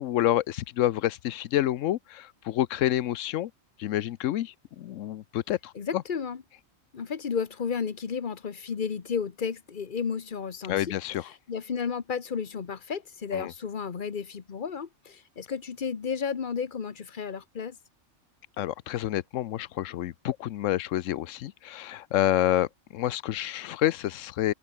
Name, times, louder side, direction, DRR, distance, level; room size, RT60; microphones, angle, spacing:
voice 1, 0.0-3.5 3.8-6.0 10.7-11.3 13.3-13.5 18.6-24.5, left 13 dB, 75° left, 1.0 m, -28 dB
voice 2, 5.7-6.4 6.9-10.9 11.5-17.8, left 6 dB, 40° left, 1.1 m, -32 dB
open air
omnidirectional pair, 1.3 m